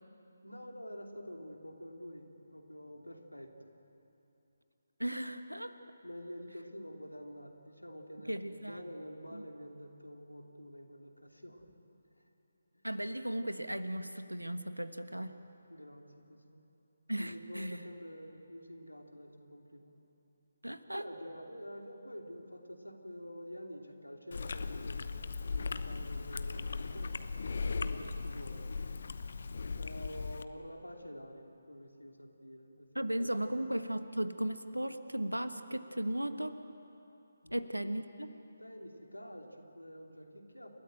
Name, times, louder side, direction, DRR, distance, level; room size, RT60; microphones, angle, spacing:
voice 1, 0.4-3.5 6.0-11.7 12.1-12.3 12.7-12.9 15.7-16.7 17.2-20.0 20.9-25.2 25.5-28.7 29.7-33.4 37.4-37.7 38.6-40.7, equal, 90° left, 2 dB, 2.9 m, -48 dB
voice 2, 5.0-5.8 8.3-8.8 9.3-9.4 12.8-15.4 17.1-17.8 20.6-21.0 32.9-36.6 37.5-38.3, right 1 dB, 85° right, 10 dB, 1.3 m, -36 dB
Chewing mastication, 24.3-30.4, left 4 dB, 50° left, 0.9 m, -38 dB
29.0 x 14.0 x 9.0 m, 2.9 s
figure-of-eight pair, 150°, 0 cm